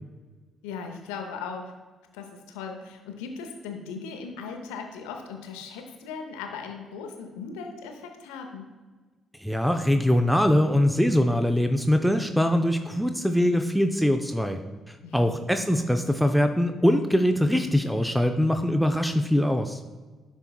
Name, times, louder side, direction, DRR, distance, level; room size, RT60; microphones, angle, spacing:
voice 1, 0.6-1.7 2.1-8.7 15.0-15.4, left 5 dB, 75° left, 4 dB, 0.7 m, -38 dB
voice 2, 9.4-14.6 14.9-19.8, equal, ahead, 7 dB, 0.5 m, -23 dB
11.0 x 4.5 x 2.3 m, 1.4 s
hypercardioid pair, 45°, 0 cm